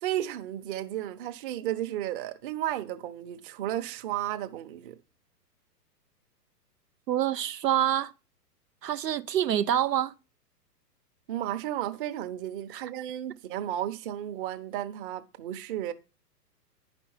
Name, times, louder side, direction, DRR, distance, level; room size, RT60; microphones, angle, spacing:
voice 1, 0.0-5.0 11.3-15.9, right 12 dB, 35° right, 0.9 m, -33 dB
voice 2, 7.1-8.1 8.8-10.1 12.7-12.8, right 11 dB, 80° right, 0.6 m, -26 dB
10.5 x 5.3 x 4.4 m
figure-of-eight pair, 115°, 49 cm